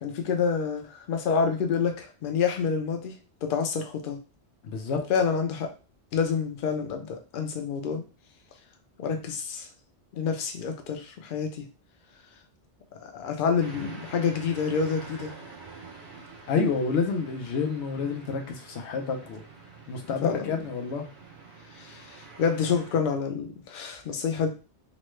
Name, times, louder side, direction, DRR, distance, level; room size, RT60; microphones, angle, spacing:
voice 1, 0.0-3.1 3.5-4.2 5.1-5.7 6.1-8.0 9.0-9.7 10.1-11.7 13.0-15.3 20.2-20.5 21.8-24.5, left 6 dB, 60° left, 5 dB, 0.7 m, -28 dB
voice 2, 4.6-5.0 16.5-19.4 19.9-21.1, left 5 dB, 90° left, 4 dB, 0.9 m, -28 dB
sound 1, 13.6-23.0, right 4 dB, 55° right, 0.8 m, -47 dB
3.1 x 2.1 x 3.1 m, 0.33 s
omnidirectional pair, 1.1 m